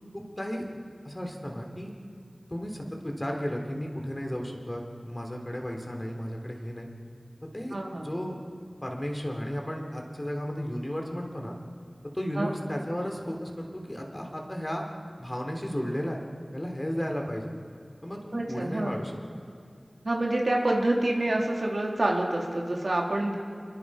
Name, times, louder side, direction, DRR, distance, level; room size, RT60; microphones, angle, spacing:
voice 1, 0.1-0.6 1.0-1.9 2.5-6.9 7.5-8.3 8.8-11.6 12.1-14.8 15.2-16.2 16.5-17.5 18.0-19.1, equal, 25° left, 1 dB, 3.4 m, -34 dB
voice 2, 7.7-8.1 12.3-12.5 18.3-19.0 20.0-23.3, right 1 dB, 90° right, -2 dB, 3.1 m, -27 dB
27.5 x 22.0 x 5.0 m, 2.5 s
wide cardioid pair, 50°, 0 cm